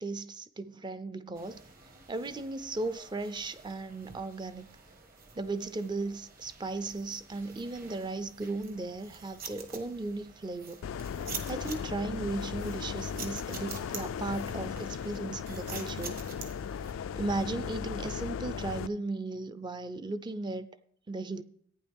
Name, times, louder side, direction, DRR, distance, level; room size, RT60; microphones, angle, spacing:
voice 1, 0.0-1.6 2.1-4.7 5.4-10.8 11.5-16.2 17.1-20.7 21.1-21.4, right 3 dB, 20° right, 12 dB, 0.4 m, -36 dB
sound 1, 1.3-16.9, right 5 dB, 45° right, 1.5 m, -48 dB
sound 2, 10.8-18.9, left 7 dB, 80° left, 0.3 m, -37 dB
14.5 x 9.1 x 3.5 m, 0.65 s
head